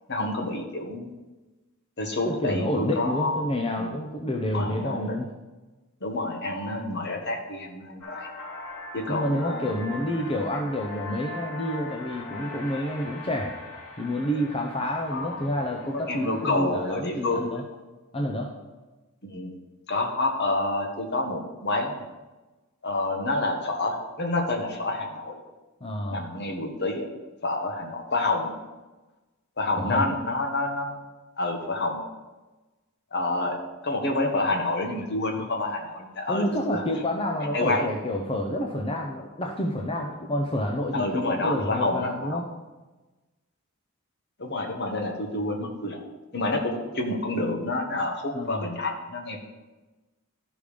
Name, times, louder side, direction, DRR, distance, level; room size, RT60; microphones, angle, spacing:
voice 1, 0.1-1.1 2.0-3.4 3.8-3.9 4.5-5.2 6.0-8.3 8.9-9.7 14.3-14.5 15.1-15.5 15.9-17.6 19.2-19.5 19.9-21.9 22.8-25.4 26.1-27.1 27.4-28.5 29.6-31.0 31.4-32.0 33.1-33.6 33.8-36.8 37.5-37.9 40.9-42.4 44.4-46.0 46.3-49.5, left 2 dB, 50° left, 3 dB, 1.4 m, -28 dB
voice 2, 2.2-5.3 9.1-13.6 14.0-17.6 18.1-18.5 25.8-26.2 29.8-30.1 36.3-42.5 48.3-48.6, left 1 dB, 25° left, 0 dB, 0.7 m, -29 dB
sound 1, 8.0-16.5, left 3 dB, 80° left, 3.6 m, -41 dB
12.5 x 5.2 x 5.1 m, 1.2 s
head